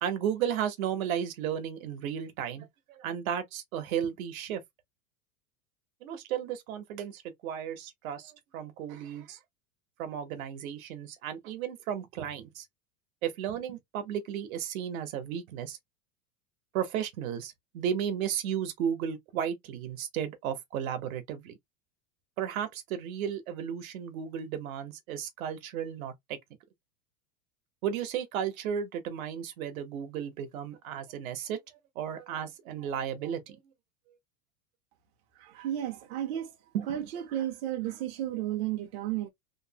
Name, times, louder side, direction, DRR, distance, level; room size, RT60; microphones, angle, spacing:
voice 1, 0.0-4.6 6.0-9.4 10.0-12.6 13.2-15.8 16.7-21.5 22.4-26.4 27.8-31.6 31.9-33.6 36.7-36.9, right 9 dB, 75° right, 1.0 m, -34 dB
voice 2, 35.4-36.5 36.9-39.3, right 12 dB, 50° right, 0.7 m, -33 dB
3.0 x 2.0 x 2.8 m
supercardioid pair, 160°, 42 cm